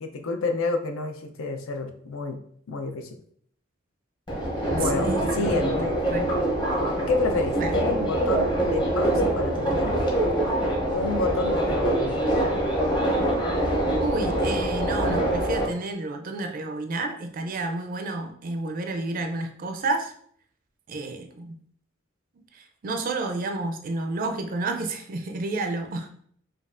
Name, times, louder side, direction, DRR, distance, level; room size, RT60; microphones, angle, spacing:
voice 1, 0.0-2.4 2.7-3.2 4.7-5.1 5.3-6.0 7.1-9.9 10.9-12.2, left 3 dB, 80° left, 6 dB, 0.5 m, -29 dB
Subway metro underground, 4.3-15.7, right 1 dB, 25° left, 0.8 m, -24 dB
voice 2, 4.6-6.3 7.6-7.8 14.0-20.1 20.9-21.6 22.5-26.1, right 2 dB, 45° right, 5 dB, 0.4 m, -30 dB
5.2 x 2.3 x 2.5 m, 0.63 s
head